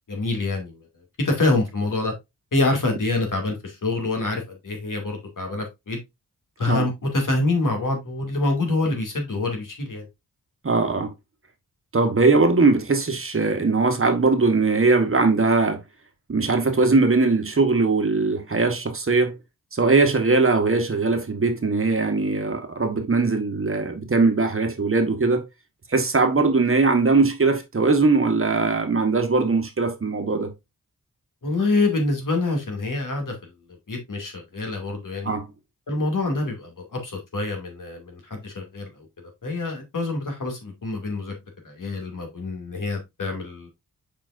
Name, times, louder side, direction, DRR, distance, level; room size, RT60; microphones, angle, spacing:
voice 1, 0.1-0.8 1.2-2.1 2.5-6.0 6.6-10.1 31.4-33.5 33.9-35.3 35.9-39.1 39.4-41.3 41.6-43.7, left 2 dB, 60° left, 2.6 m, -26 dB
voice 2, 10.6-11.1 11.9-15.8 16.3-19.3 19.7-25.4 25.9-30.5 35.2-35.5, right 3 dB, 40° right, 1.3 m, -20 dB
7.2 x 5.1 x 2.6 m
wide cardioid pair, 100°, 35 cm